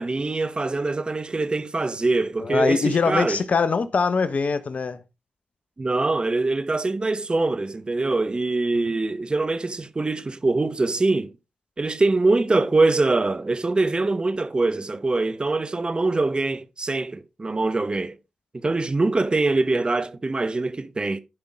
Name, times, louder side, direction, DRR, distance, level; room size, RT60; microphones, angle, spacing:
voice 1, 0.0-3.4 5.8-11.3 11.8-18.1 18.5-21.2, right 3 dB, 35° right, 1.0 m, -23 dB
voice 2, 2.4-5.0, left 5 dB, 50° left, 1.1 m, -22 dB
13.0 x 5.7 x 3.6 m
supercardioid pair, 40°, 3 cm